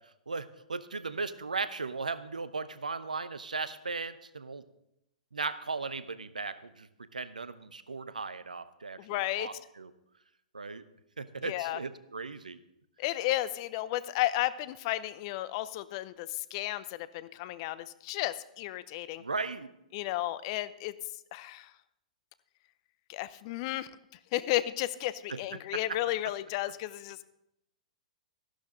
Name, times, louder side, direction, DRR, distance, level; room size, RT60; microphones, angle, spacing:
voice 1, 0.3-4.7 5.3-9.9 10.5-10.9 11.2-12.6 19.2-19.7 25.3-25.4, right 4 dB, 85° right, 14 dB, 0.7 m, -37 dB
voice 2, 9.0-9.5 11.4-11.8 13.0-19.2 19.9-21.0 21.3-21.7 23.1-23.9 24.3-27.2, left 15 dB, 45° left, 16 dB, 0.6 m, -33 dB
14.0 x 11.5 x 3.8 m, 0.83 s
figure-of-eight pair, 110°, 4 cm